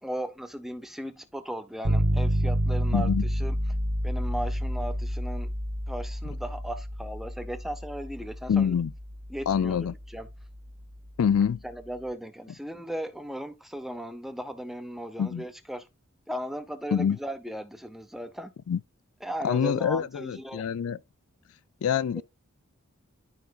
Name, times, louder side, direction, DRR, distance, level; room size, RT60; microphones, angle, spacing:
voice 1, 0.0-3.6 4.0-5.5 5.9-8.7 9.3-10.3 11.6-15.9 16.3-18.5 19.2-20.6 22.2-22.3, equal, ahead, 0.8 m, -37 dB
sound 1, 1.9-11.7, equal, 55° right, 1.3 m, -30 dB
voice 2, 2.9-3.2 8.5-8.9 9.5-9.9 11.2-11.6 15.2-15.4 16.9-17.2 18.7-18.8 19.4-21.0 21.8-22.2, left 7 dB, 75° left, 0.3 m, -25 dB
11.5 x 5.1 x 2.4 m
head